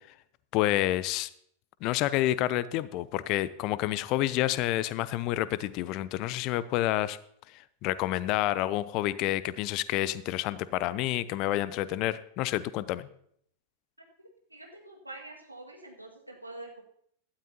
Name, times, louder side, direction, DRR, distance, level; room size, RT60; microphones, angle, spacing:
voice 1, 0.5-1.3 1.8-7.2 7.8-13.1, left 15 dB, 40° left, 17 dB, 0.6 m, -29 dB
voice 2, 14.5-16.8, right 2 dB, 85° right, 1 dB, 1.9 m, -45 dB
16.0 x 12.5 x 2.8 m, 0.67 s
figure-of-eight pair, 90°, 0 cm